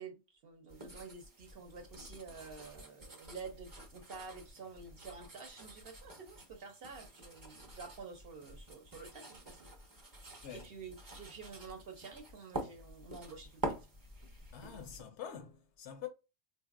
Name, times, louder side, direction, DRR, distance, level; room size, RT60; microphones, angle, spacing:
voice 1, 0.0-9.7 10.5-13.8, right 5 dB, 55° right, 0.8 m, -49 dB
sound 1, 0.7-15.0, right 2 dB, 20° right, 0.6 m, -47 dB
voice 2, 14.5-16.1, left 9 dB, 70° left, 0.8 m, -46 dB
3.8 x 2.5 x 2.3 m
omnidirectional pair, 1.3 m